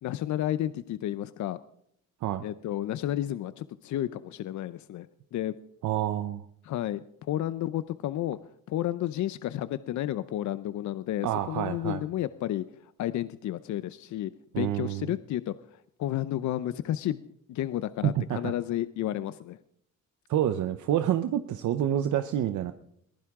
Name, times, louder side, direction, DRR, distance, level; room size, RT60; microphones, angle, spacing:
voice 1, 0.0-1.6 2.4-5.5 6.6-8.4 8.7-12.6 13.0-14.3 14.6-15.5 16.0-19.6, left 12 dB, 70° left, 14 dB, 0.7 m, -31 dB
voice 2, 5.8-6.4 11.2-12.0 14.5-15.1 18.0-18.5 20.3-22.7, right 11 dB, 75° right, 10 dB, 0.8 m, -28 dB
22.0 x 15.0 x 3.7 m, 0.71 s
cardioid pair, 90°, 30 cm